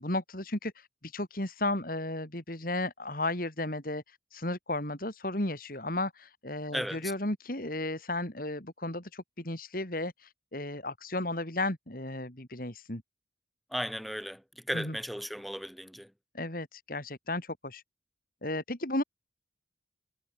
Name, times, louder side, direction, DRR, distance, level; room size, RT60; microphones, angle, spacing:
voice 1, 0.0-13.0 14.7-15.0 16.3-17.8 18.4-19.0, left 2 dB, 50° left, 3.6 m, -34 dB
voice 2, 6.7-7.1 13.7-16.1, equal, ahead, 3.6 m, -36 dB
head